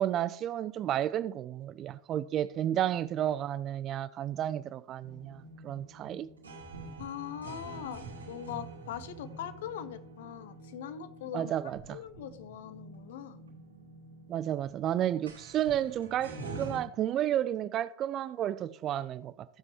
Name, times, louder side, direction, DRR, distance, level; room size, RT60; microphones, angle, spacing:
voice 1, 0.0-6.3 11.3-12.0 14.3-19.5, right 11 dB, 30° right, 0.4 m, -32 dB
sound 1, 5.0-16.8, right 3 dB, 75° right, 2.5 m, -47 dB
voice 2, 7.0-11.5 11.9-13.4, left 10 dB, 55° left, 0.9 m, -41 dB
15.0 x 7.5 x 3.1 m
figure-of-eight pair, 90°, 0 cm